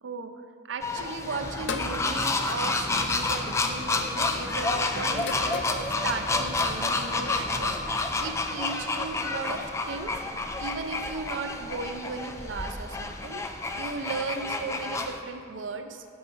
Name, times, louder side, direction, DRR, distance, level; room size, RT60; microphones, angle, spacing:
voice 1, 0.0-10.2 10.6-13.5 13.8-16.0, right 4 dB, 75° right, 8 dB, 0.5 m, -36 dB
sound 1, 0.8-15.2, left 3 dB, 15° left, 0.3 m, -30 dB
sound 2, 1.2-15.0, equal, 10° right, 0.9 m, -42 dB
sound 3, 1.7-2.0 3.2-3.5 5.2-5.9, left 5 dB, 70° left, 0.5 m, -34 dB
12.0 x 4.7 x 3.9 m, 2.7 s
head